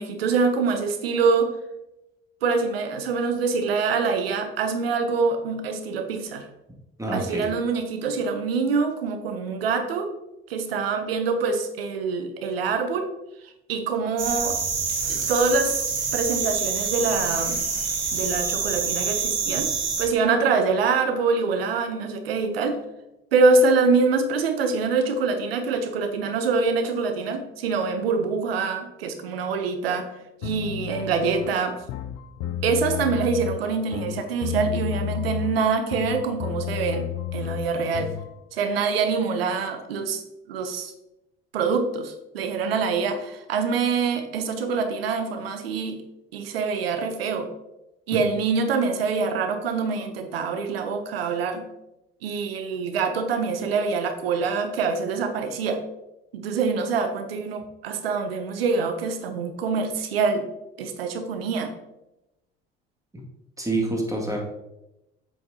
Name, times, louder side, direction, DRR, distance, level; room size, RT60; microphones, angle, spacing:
voice 1, 0.0-1.5 2.4-6.5 7.1-10.1 10.5-13.1 13.4-14.6 15.1-15.8 16.1-17.7 18.1-19.7 20.0-22.8 23.3-30.1 30.4-31.8 32.6-37.1 37.3-38.1 38.5-40.2 40.5-40.9 41.5-46.0 46.3-47.5 48.1-51.7 52.2-55.8 56.3-60.4 60.8-61.7, right 4 dB, 85° right, 7 dB, 0.8 m, -25 dB
voice 2, 7.0-7.4 63.1-63.2 63.6-64.4, right 2 dB, 10° right, -1 dB, 2.1 m, -27 dB
sound 1, 14.2-20.1, right 5 dB, 55° right, 1.7 m, -26 dB
sound 2, 30.4-38.3, left 12 dB, 60° left, 0.5 m, -32 dB
8.0 x 5.7 x 2.8 m, 0.92 s
hypercardioid pair, 60°, 29 cm